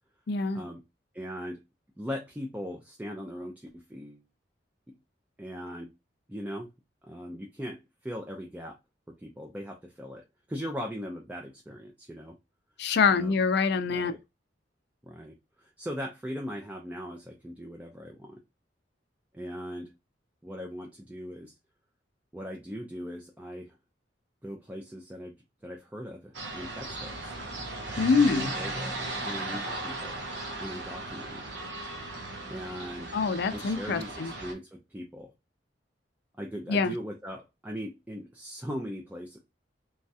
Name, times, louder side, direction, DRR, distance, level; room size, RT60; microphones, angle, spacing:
voice 1, 0.3-0.6 12.8-14.1 28.0-28.5 33.1-34.3 36.7-36.9, left 5 dB, 65° left, 0.4 m, -25 dB
voice 2, 1.1-1.6 2.0-4.2 5.4-5.9 6.3-6.7 7.0-8.8 9.2-12.3 13.1-13.3 13.9-14.2 15.0-18.4 19.3-19.9 20.4-21.5 22.3-23.8 24.4-25.3 25.6-27.3 28.3-29.0 29.3-30.2 30.6-31.4 32.5-33.1 33.5-35.3 36.4-39.4, equal, 10° right, 0.4 m, -39 dB
sound 1, 26.3-34.5, right 2 dB, 70° right, 0.8 m, -37 dB
3.1 x 2.3 x 2.6 m
head